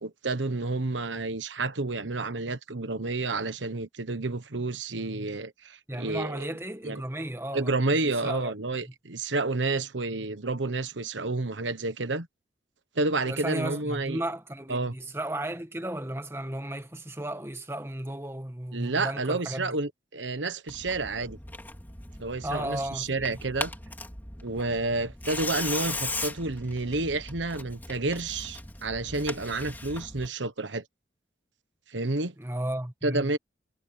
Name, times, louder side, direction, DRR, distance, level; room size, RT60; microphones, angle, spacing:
voice 1, 0.0-6.5 6.8-7.0 7.5-12.3 13.0-14.2 14.7-14.9 18.7-21.4 22.2-23.7 24.4-30.8 31.9-32.3 33.0-33.4, right 2 dB, 80° right, 1.2 m, -30 dB
voice 2, 5.9-8.5 13.3-19.7 22.4-23.3 32.4-33.3, right 1 dB, 15° right, 1.7 m, -34 dB
Tearing, 20.7-30.3, left 2 dB, 10° left, 3.2 m, -38 dB
head